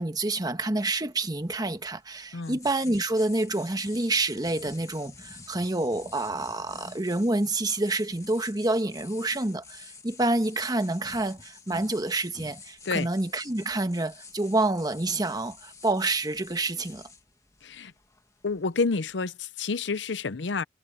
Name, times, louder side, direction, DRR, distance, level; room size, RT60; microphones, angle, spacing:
voice 1, 0.0-17.1, right 2 dB, 20° right, 1.3 m, -28 dB
sound 1, 0.8-19.2, left 4 dB, 20° left, 2.0 m, -49 dB
voice 2, 17.6-17.9 18.4-20.6, left 4 dB, 85° left, 0.7 m, -29 dB
head